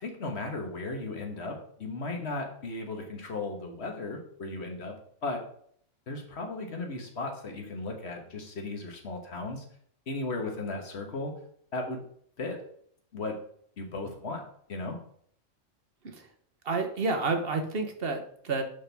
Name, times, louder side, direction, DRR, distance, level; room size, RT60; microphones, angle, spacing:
voice 1, 0.0-4.9 5.2-5.4 6.1-9.6 10.1-11.3 11.7-12.0 12.4-12.6 13.1-13.4 13.8-14.4 14.7-15.0, left 2 dB, 50° left, 3 dB, 1.6 m, -36 dB
voice 2, 16.6-18.6, right 3 dB, 45° right, 6 dB, 1.1 m, -30 dB
10.5 x 4.4 x 3.4 m, 0.63 s
omnidirectional pair, 1.4 m